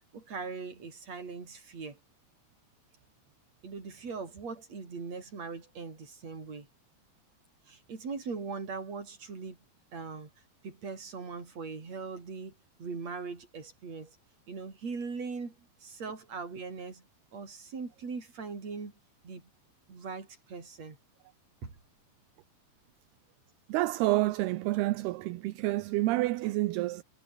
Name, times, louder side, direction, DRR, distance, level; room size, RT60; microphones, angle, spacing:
voice 1, 0.1-2.0 3.6-6.7 7.7-9.6 9.9-10.3 10.6-14.2 14.5-17.1 17.3-18.9 19.2-19.5 19.9-21.0 21.6-21.7, right 4 dB, 40° right, 6.1 m, -40 dB
voice 2, 23.7-27.0, right 18 dB, 75° right, 2.7 m, -28 dB
omnidirectional pair, 4.9 m